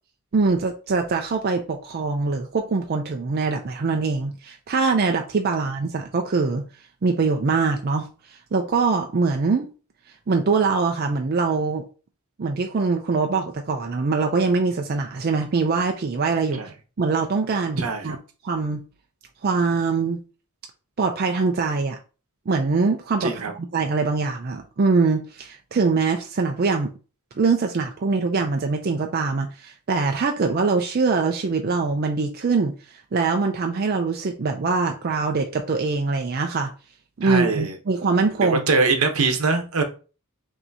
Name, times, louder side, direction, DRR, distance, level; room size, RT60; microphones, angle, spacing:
voice 1, 0.3-6.6 7.0-9.7 10.3-11.8 12.4-16.6 17.0-18.2 18.4-18.8 19.4-20.2 21.0-22.0 22.5-23.4 23.7-26.9 27.4-36.7 37.2-38.6, right 4 dB, 45° right, 0.4 m, -23 dB
voice 2, 17.8-18.2 23.2-23.5 37.2-37.7 38.4-39.8, right 4 dB, 80° right, 0.8 m, -22 dB
5.6 x 2.7 x 2.7 m
head